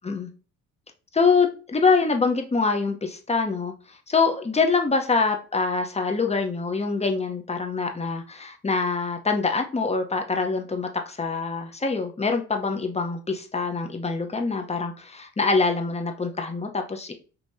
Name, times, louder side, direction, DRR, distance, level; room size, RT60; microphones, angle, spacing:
voice 1, 1.1-3.7 4.1-17.1, left 4 dB, 20° left, 0.8 m, -24 dB
5.4 x 2.9 x 2.6 m
cardioid pair, 90°, 30 cm